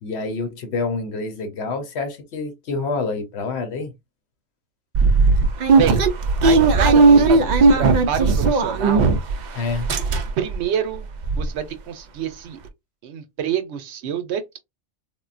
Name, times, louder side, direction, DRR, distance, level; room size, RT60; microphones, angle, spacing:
voice 1, 0.0-3.9 7.1-7.3 9.5-9.9, left 3 dB, 70° left, 1.0 m, -27 dB
sound 1, 4.9-9.4 9.7-10.6 10.9-11.0 11.2-11.5, right 3 dB, 60° right, 0.5 m, -16 dB
voice 2, 6.4-9.1 10.4-11.1 11.4-12.6 13.0-14.6, right 8 dB, 75° right, 0.9 m, -27 dB
3.6 x 2.2 x 2.4 m
omnidirectional pair, 1.2 m